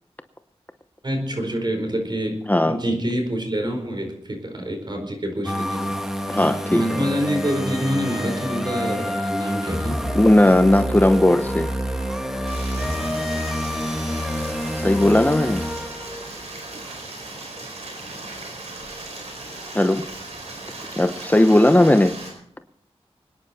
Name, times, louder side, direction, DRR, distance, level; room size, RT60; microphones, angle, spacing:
voice 1, 1.0-5.9 6.3-6.4 6.7-10.0, equal, 45° right, 4 dB, 4.5 m, -26 dB
sound 1, 5.4-16.3, equal, 5° right, 2.1 m, -27 dB
voice 2, 6.3-6.8 10.1-11.7 14.8-15.6 19.7-20.1 21.0-22.1, left 1 dB, 15° left, 8 dB, 0.8 m, -17 dB
Stream, 12.5-22.3, right 2 dB, 90° right, 4.8 m, -37 dB
24.5 x 9.9 x 4.4 m, 0.67 s
wide cardioid pair, 65°, 11 cm